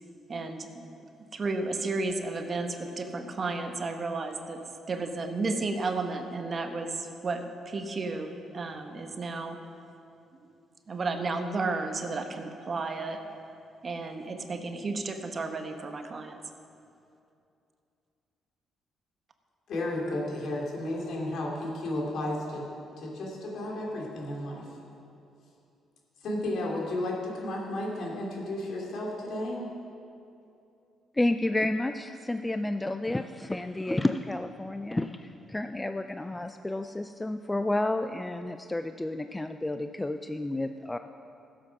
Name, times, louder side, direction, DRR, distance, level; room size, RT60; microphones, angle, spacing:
voice 1, 0.3-0.8 1.3-4.6 4.9-9.6 10.9-13.2 13.8-16.4, right 3 dB, 40° right, 6 dB, 1.1 m, -33 dB
voice 2, 19.7-22.7 23.0-24.7 26.2-29.6, left 1 dB, 70° left, -2 dB, 3.1 m, -33 dB
voice 3, 31.1-41.0, left 2 dB, 15° left, 8 dB, 0.4 m, -30 dB
15.0 x 7.7 x 6.0 m, 2.6 s
cardioid pair, 90°, 0 cm